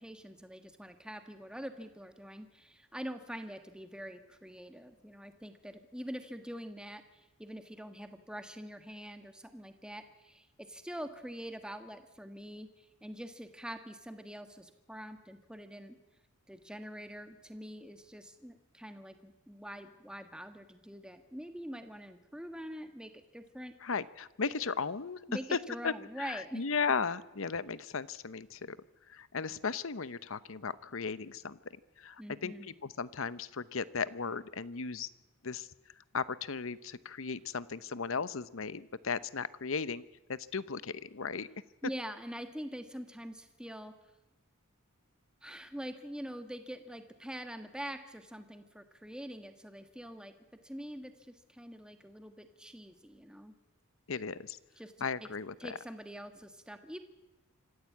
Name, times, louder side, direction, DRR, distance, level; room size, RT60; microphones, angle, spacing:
voice 1, 0.0-12.7 13.0-16.0 16.5-23.7 25.3-26.6 32.2-32.7 41.8-43.9 45.4-50.3 50.6-53.5 54.8-55.3 55.6-57.0, equal, 5° right, 8 dB, 1.5 m, -44 dB
voice 2, 23.8-25.2 25.5-25.6 25.8-28.8 29.1-31.6 32.0-35.1 35.4-35.7 36.1-40.0 40.3-41.5 54.1-54.6 55.0-55.8, left 5 dB, 70° left, 16 dB, 0.8 m, -36 dB
25.5 x 15.0 x 8.6 m, 1.0 s
head